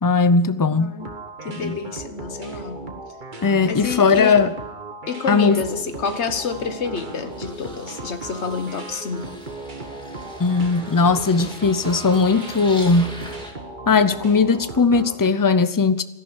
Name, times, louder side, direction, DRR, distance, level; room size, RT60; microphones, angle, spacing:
voice 1, 0.0-0.9 1.6-1.8 3.4-4.5 5.3-5.6 10.4-13.1 13.9-16.0, left 4 dB, 25° left, 0.5 m, -18 dB
voice 2, 0.7-2.9 3.7-4.4 5.1-9.3, left 5 dB, 70° left, 1.5 m, -29 dB
sound 1, 1.0-15.3, right 2 dB, 45° right, 1.6 m, -37 dB
sound 2, 5.4-13.5, equal, 5° left, 2.2 m, -41 dB
13.5 x 11.5 x 8.0 m
omnidirectional pair, 1.2 m